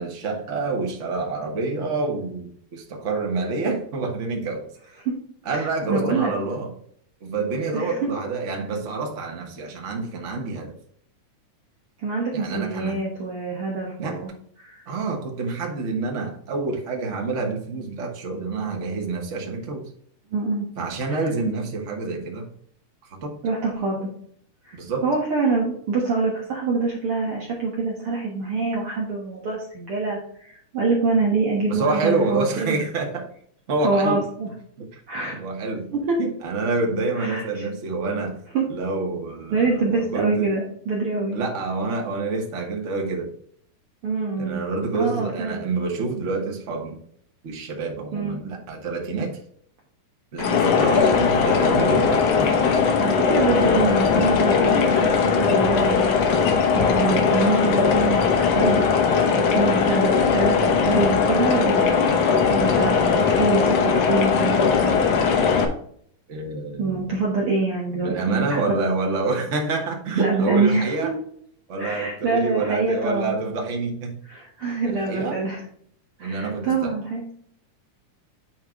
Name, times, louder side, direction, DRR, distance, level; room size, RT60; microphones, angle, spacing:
voice 1, 0.0-4.7 5.4-6.7 7.2-10.7 12.3-13.0 14.0-14.2 14.9-19.9 20.8-22.5 23.2-23.4 24.7-25.1 31.7-33.3 33.7-34.2 34.8-35.0 35.3-35.9 36.2-38.4 38.7-40.5 41.3-43.3 44.4-47.0 47.4-49.4 50.3-52.2 66.3-67.1 67.9-71.1 71.7-74.2 74.8-75.4 76.2-77.0, right 3 dB, 80° right, 1 dB, 0.6 m, -27 dB
voice 2, 5.5-6.3 7.7-8.1 12.0-14.3 14.6-14.8 20.3-20.7 21.1-21.2 23.4-24.1 24.6-32.8 33.8-34.5 35.1-35.4 35.9-36.2 37.2-37.6 38.5-38.6 39.5-41.4 44.0-44.6 44.9-45.7 48.1-48.4 53.0-58.9 59.4-62.2 62.5-65.0 66.8-68.8 70.2-71.1 71.8-73.4 74.3-75.6 76.2-77.2, right 3 dB, 55° right, -3 dB, 2.0 m, -25 dB
sound 1, 50.4-65.7, left 5 dB, 65° left, 1.9 m, -19 dB
8.4 x 4.6 x 3.7 m, 0.63 s
omnidirectional pair, 3.6 m